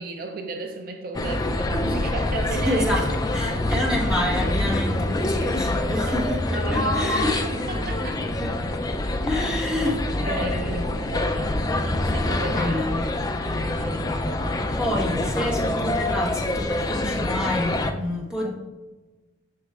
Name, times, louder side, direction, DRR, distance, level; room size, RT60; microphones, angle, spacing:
voice 1, 0.0-3.0 3.5-3.8 5.9-8.3 9.4-12.9 13.6-14.2, right 3 dB, 50° right, 4 dB, 0.4 m, -35 dB
sound 1, 1.1-17.9, left 1 dB, 20° left, 0.3 m, -25 dB
voice 2, 2.5-3.1 3.3-7.4 8.2-8.6 9.2-10.9 12.5-13.0 14.8-18.5, left 1 dB, 5° right, -4 dB, 1.3 m, -28 dB
7.6 x 6.2 x 2.4 m, 1.2 s
head